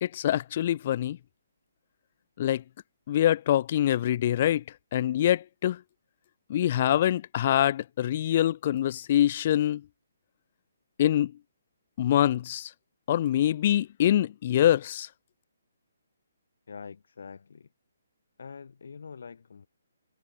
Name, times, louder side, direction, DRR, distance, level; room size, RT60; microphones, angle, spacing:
voice 1, 0.0-1.2 2.4-2.6 3.1-4.6 4.9-5.8 6.5-9.8 11.0-11.3 12.0-12.7 13.1-15.1, left 11 dB, 35° left, 0.5 m, -24 dB
voice 2, 16.7-17.7 18.4-19.7, left 5 dB, 65° left, 4.0 m, -44 dB
hypercardioid pair, 165°, 0 cm